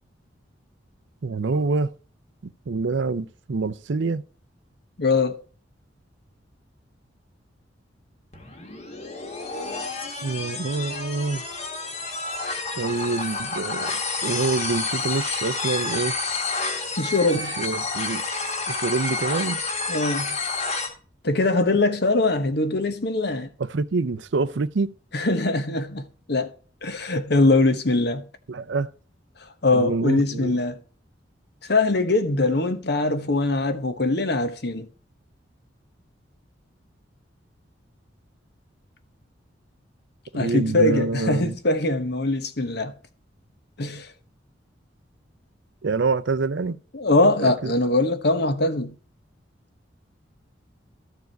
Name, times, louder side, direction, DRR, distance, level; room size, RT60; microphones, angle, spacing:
voice 1, 1.2-1.9 2.4-4.2 10.2-11.5 12.8-16.1 17.3-18.2 18.7-19.6 23.6-24.9 28.5-28.9 29.7-30.6 40.3-41.6 45.8-46.8 47.4-47.7, right 3 dB, 70° right, 0.5 m, -26 dB
voice 2, 5.0-5.4 17.0-17.6 19.9-20.4 21.2-23.5 25.1-26.5 26.8-28.2 29.6-30.8 31.7-34.9 40.3-42.9 43.8-44.1 46.9-48.9, left 2 dB, 60° left, 1.1 m, -22 dB
sound 1, 8.3-20.9, left 3 dB, 35° left, 1.7 m, -29 dB
13.5 x 4.7 x 4.5 m
head